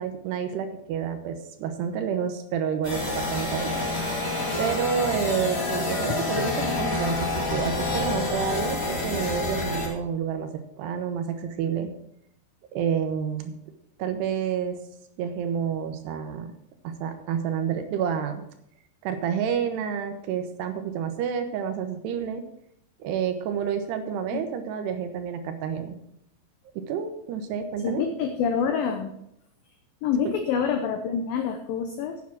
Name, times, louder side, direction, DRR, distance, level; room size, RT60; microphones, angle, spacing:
voice 1, 0.0-3.7 4.6-11.9 12.7-13.5 14.0-14.8 15.2-16.5 16.8-18.4 19.0-22.4 23.0-26.0 26.8-28.0 30.2-30.4, right 7 dB, 75° right, 7 dB, 2.8 m, -29 dB
sound 1, 2.8-9.9, left 2 dB, 25° left, 1.4 m, -28 dB
voice 2, 27.8-29.1 30.0-32.2, left 7 dB, 85° left, 6 dB, 2.0 m, -26 dB
9.6 x 7.2 x 6.0 m, 0.75 s
omnidirectional pair, 5.1 m